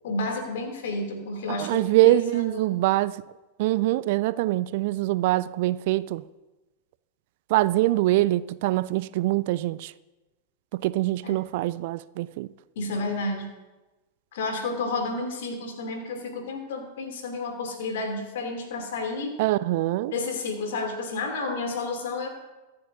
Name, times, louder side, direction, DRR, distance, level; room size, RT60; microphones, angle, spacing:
voice 1, 0.0-1.8 2.3-2.6 11.2-11.3 12.7-13.5 14.3-19.4 20.1-22.3, left 3 dB, 55° left, 2.9 m, -31 dB
voice 2, 1.6-3.2 3.6-6.2 7.5-9.9 10.7-12.5 19.4-20.1, right 16 dB, 50° right, 0.4 m, -24 dB
24.5 x 10.5 x 2.8 m
figure-of-eight pair, 90°, 0 cm